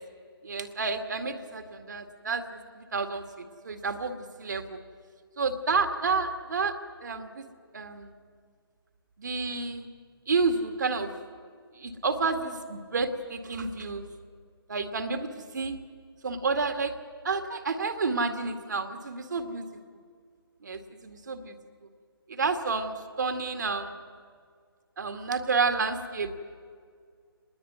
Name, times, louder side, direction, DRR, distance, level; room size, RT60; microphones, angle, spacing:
voice 1, 0.4-3.2 3.6-4.8 5.4-6.7 7.0-7.4 7.7-8.1 9.2-9.9 10.3-11.1 11.8-14.1 14.7-15.7 16.2-16.9 17.2-19.7 20.6-21.5 22.3-23.9 25.0-26.3, right 4 dB, 50° right, 7 dB, 2.0 m, -30 dB
26.5 x 20.5 x 9.5 m, 2.1 s
figure-of-eight pair, 145°, 13 cm